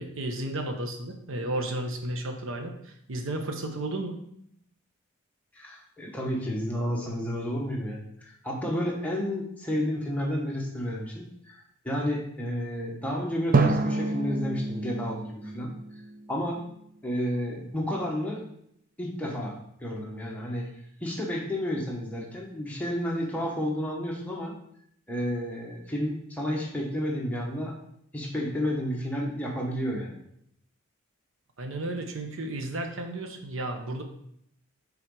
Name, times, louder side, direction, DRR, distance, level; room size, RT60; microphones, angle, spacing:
voice 1, 0.0-4.2 31.6-34.0, right 1 dB, 65° right, 4 dB, 0.8 m, -33 dB
voice 2, 5.5-15.7 16.3-16.6 17.0-18.4 19.0-20.7 21.0-24.5 25.1-27.8 28.1-30.2, equal, 5° left, -2 dB, 1.1 m, -31 dB
Drum, 13.5-16.4, right 3 dB, 40° right, 0.4 m, -27 dB
5.9 x 4.0 x 4.7 m, 0.72 s
head